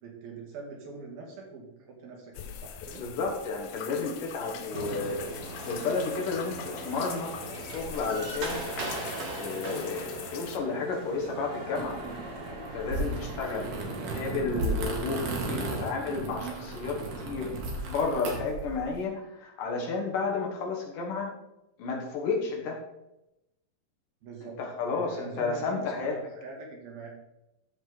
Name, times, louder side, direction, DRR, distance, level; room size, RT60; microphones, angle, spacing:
voice 1, 0.0-3.0 13.4-13.7 14.0-14.2 14.6-14.8 24.2-27.1, right 4 dB, 80° right, -1 dB, 3.8 m, -44 dB
sound 1, 2.3-10.6, left 9 dB, 80° left, 2.6 m, -42 dB
voice 2, 3.0-5.3 5.6-9.0 9.3-12.0 12.5-13.8 14.2-17.6 17.9-21.3 21.8-22.8 24.4-26.2, left 4 dB, 65° left, 1 dB, 2.9 m, -32 dB
sound 2, 4.7-14.2, right 2 dB, 45° right, 1.4 m, -39 dB
sound 3, 11.7-18.9, right 2 dB, 60° right, 3.1 m, -35 dB
13.0 x 5.2 x 4.0 m, 0.90 s
omnidirectional pair, 4.2 m